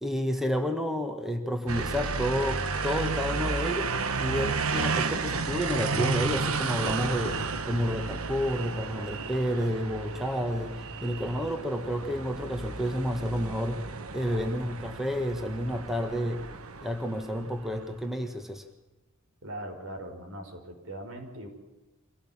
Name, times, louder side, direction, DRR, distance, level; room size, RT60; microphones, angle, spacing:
voice 1, 0.0-3.9 4.2-13.8 14.1-16.4 16.8-18.6, equal, ahead, 5 dB, 1.6 m, -30 dB
sound 1, 1.7-17.8, right 4 dB, 90° right, 1.4 m, -32 dB
voice 2, 19.4-21.5, right 1 dB, 65° right, 3 dB, 5.4 m, -40 dB
25.5 x 17.0 x 7.4 m, 1.1 s
head